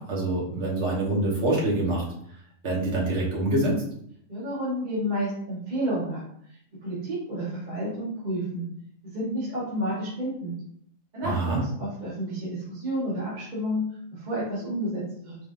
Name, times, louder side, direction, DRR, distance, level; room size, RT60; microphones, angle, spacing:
voice 1, 0.0-2.0 2.6-3.8 11.2-11.6, right 2 dB, 60° right, -4 dB, 1.5 m, -25 dB
voice 2, 4.3-6.2 6.8-8.7 9.1-10.5 11.1-13.9 14.1-15.4, equal, 35° right, -8 dB, 1.3 m, -30 dB
4.2 x 3.5 x 2.5 m, 0.69 s
omnidirectional pair, 1.3 m